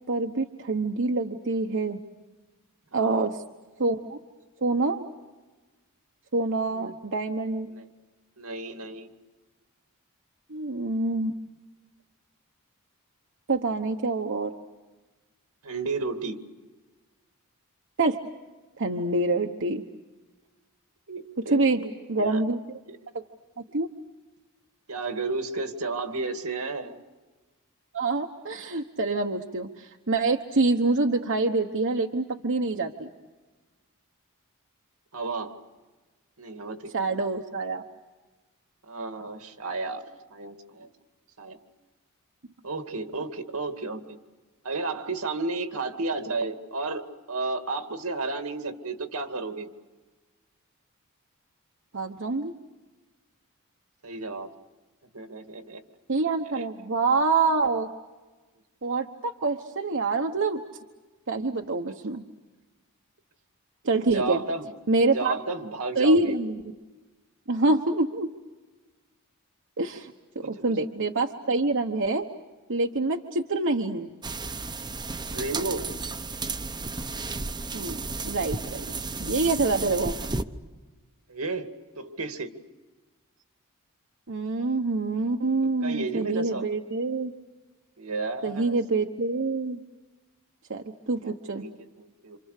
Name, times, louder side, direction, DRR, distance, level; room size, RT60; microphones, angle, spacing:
voice 1, 0.1-2.0 2.9-3.4 3.8-4.2 4.6-5.0 6.3-7.7 10.5-11.3 13.5-14.5 18.0-18.2 18.8-19.8 21.5-21.8 22.1-22.6 23.1-23.2 23.7-23.9 27.9-33.1 36.9-37.8 51.9-52.5 56.1-57.9 58.8-60.6 61.3-62.2 63.8-64.4 64.9-65.4 66.0-66.6 67.5-68.3 69.8-72.3 72.7-74.1 77.7-78.0 78.2-78.8 79.2-80.2 84.3-87.3 88.4-89.8 90.7-91.6, right 3 dB, 60° right, 4 dB, 1.1 m, -26 dB
voice 2, 2.9-3.3 6.7-7.0 7.7-7.9 8.4-9.1 15.6-16.4 21.1-21.9 22.2-22.4 22.9-23.0 24.9-27.0 35.1-35.6 36.4-37.2 38.9-40.9 41.4-41.6 42.6-44.0 44.6-49.7 54.0-54.5 55.1-55.8 56.6-56.7 64.1-64.7 65.1-66.4 70.4-70.7 75.3-75.9 81.3-82.5 85.8-86.6 88.0-88.8 91.2-92.4, right 3 dB, 80° right, 6 dB, 2.3 m, -32 dB
sound 1, 74.2-80.4, right 3 dB, 20° right, 0.9 m, -33 dB
28.5 x 27.5 x 6.6 m, 1.2 s
head